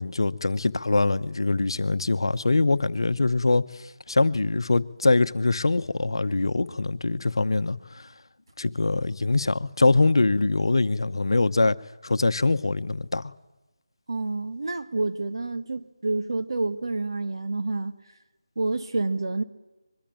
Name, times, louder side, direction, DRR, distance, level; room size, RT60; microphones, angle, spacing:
voice 1, 0.0-8.1 8.6-11.8 12.0-13.3, left 3 dB, 65° left, 1.0 m, -23 dB
voice 2, 14.1-17.9 18.6-19.4, right 3 dB, 60° right, 2.0 m, -28 dB
23.5 x 22.5 x 9.1 m
figure-of-eight pair, 165°, 3 cm